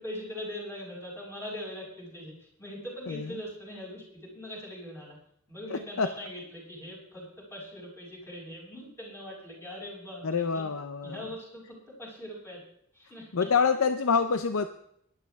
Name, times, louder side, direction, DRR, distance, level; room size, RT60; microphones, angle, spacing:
voice 1, 0.0-5.2 5.5-10.6 11.0-12.6 12.9-13.3, equal, 10° left, -5 dB, 6.9 m, -41 dB
voice 2, 5.7-6.1 10.2-11.2 13.3-14.7, left 5 dB, 90° left, 10 dB, 0.6 m, -26 dB
18.0 x 12.0 x 3.6 m, 0.71 s
head